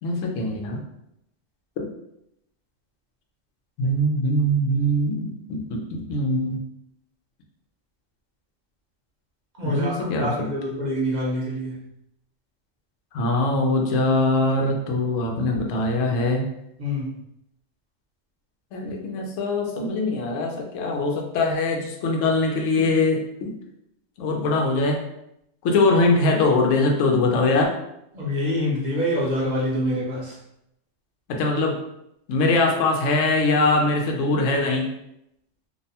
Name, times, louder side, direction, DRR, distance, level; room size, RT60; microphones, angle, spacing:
voice 1, 0.0-0.8 1.8-1.9 3.8-6.6 9.6-10.5 13.1-16.4 18.7-23.5 24.2-25.0 25.6-27.7 31.3-31.8 32.3-34.9, left 2 dB, 75° left, 2 dB, 0.9 m, -22 dB
voice 2, 9.6-11.8 16.8-17.2 28.1-30.4, left 1 dB, 40° right, -5 dB, 0.7 m, -26 dB
2.6 x 2.1 x 2.7 m, 0.80 s
omnidirectional pair, 1.3 m